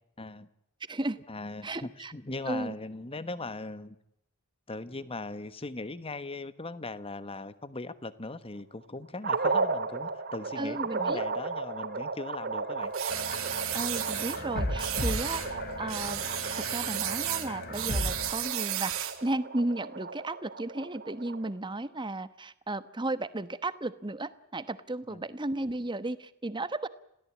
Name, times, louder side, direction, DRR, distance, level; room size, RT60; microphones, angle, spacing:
voice 1, 0.2-0.5 1.3-4.0 4.7-12.9 25.1-25.2, left 2 dB, 25° left, 14 dB, 1.2 m, -39 dB
voice 2, 0.9-1.2 1.6-2.1 2.5-2.7 10.6-11.2 13.7-16.2 16.5-26.9, right 2 dB, 20° right, 13 dB, 1.1 m, -34 dB
sound 1, 9.2-21.5, right 4 dB, 50° right, 2.2 m, -35 dB
sound 2, 12.9-14.4 14.8-15.5 15.9-19.2, right 13 dB, 70° right, 2.5 m, -34 dB
sound 3, 13.1-18.3, left 1 dB, 45° left, 3.1 m, -36 dB
27.0 x 17.0 x 8.5 m, 0.81 s
head